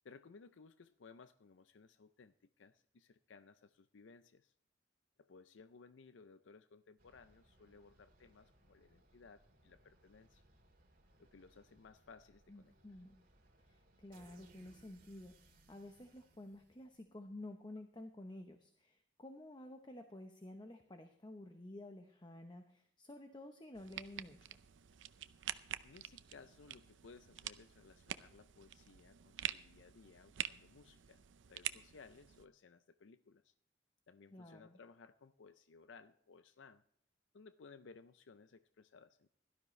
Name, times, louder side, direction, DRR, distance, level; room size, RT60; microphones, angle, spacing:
voice 1, 0.0-4.5 5.2-10.4 11.2-12.7 25.8-31.2 31.5-33.5 34.1-36.8 37.3-39.3, left 4 dB, 80° left, 12 dB, 0.5 m, -60 dB
sound 1, 7.0-17.2, right 2 dB, 50° right, 2.2 m, -68 dB
voice 2, 12.5-13.2 13.6-24.5 34.3-34.8, left 1 dB, 25° left, 6 dB, 0.9 m, -52 dB
sound 2, 23.7-32.5, right 11 dB, 85° right, 0.6 m, -47 dB
17.0 x 12.5 x 3.2 m, 0.67 s
head